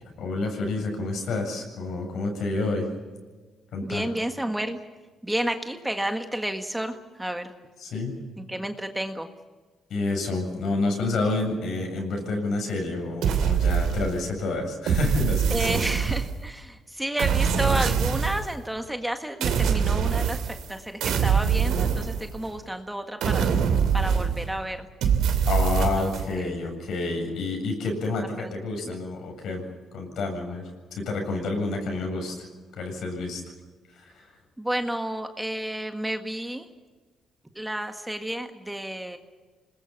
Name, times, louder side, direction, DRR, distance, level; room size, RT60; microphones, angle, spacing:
voice 1, 0.0-2.9 3.7-4.1 7.8-8.2 9.9-15.6 25.5-29.6 29.9-30.6 30.9-32.5 32.8-33.4 33.9-34.3, left 3 dB, 70° left, 3 dB, 7.7 m, -29 dB
voice 2, 3.8-4.8 5.2-7.5 8.4-9.3 15.5-23.5 23.9-24.9 26.0-26.5 28.4-28.5 28.8-29.0 34.6-36.7 37.5-39.2, right 1 dB, 5° right, 5 dB, 1.7 m, -31 dB
sound 1, 13.2-14.3 14.9-16.5 17.2-18.5 19.4-20.7 21.0-22.6 23.2-24.6 25.0-26.3, right 7 dB, 80° right, 3.0 m, -24 dB
27.0 x 20.5 x 7.3 m, 1.4 s
cardioid pair, 90°, 0 cm